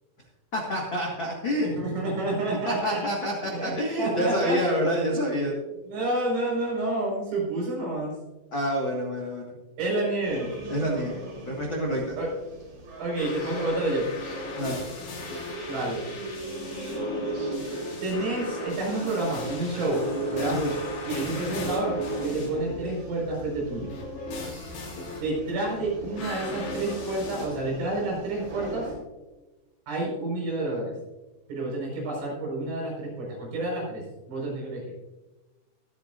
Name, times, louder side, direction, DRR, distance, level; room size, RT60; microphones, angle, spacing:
voice 1, 0.5-1.7 2.6-5.5 8.5-9.5 10.7-12.2 14.6-14.8 20.5-20.7, equal, 65° left, -2 dB, 1.2 m, -28 dB
voice 2, 1.6-3.0 3.5-4.6 5.9-8.2 9.8-10.5 12.2-12.3 13.0-14.1 15.7-16.0 18.0-20.0 20.3-20.6 21.1-23.9 25.2-28.9 29.9-30.9 31.5-34.9, right 2 dB, 90° right, -2 dB, 7.5 m, -29 dB
sound 1, 10.2-28.9, right 1 dB, 50° right, 6.0 m, -41 dB
sound 2, 13.2-22.8 23.7-25.2 26.1-27.5, equal, 80° left, 5.6 m, -35 dB
23.5 x 9.1 x 2.6 m, 1.1 s
omnidirectional pair, 5.4 m